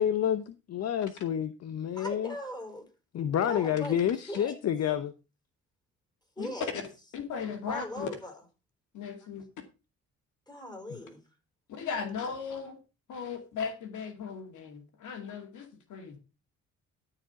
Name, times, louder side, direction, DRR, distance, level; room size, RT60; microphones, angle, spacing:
voice 1, 0.0-2.3 3.1-5.1, left 9 dB, 55° left, 12 dB, 0.8 m, -29 dB
voice 2, 1.9-2.9 3.4-4.6 6.4-6.7 7.7-8.3 10.5-11.2, left 1 dB, 15° left, 4 dB, 4.6 m, -39 dB
voice 3, 7.1-8.1 8.9-9.4 11.7-12.8 13.1-16.2, left 6 dB, 75° left, 5 dB, 2.3 m, -37 dB
13.0 x 4.9 x 5.9 m, 0.31 s
cardioid pair, 90°, 30 cm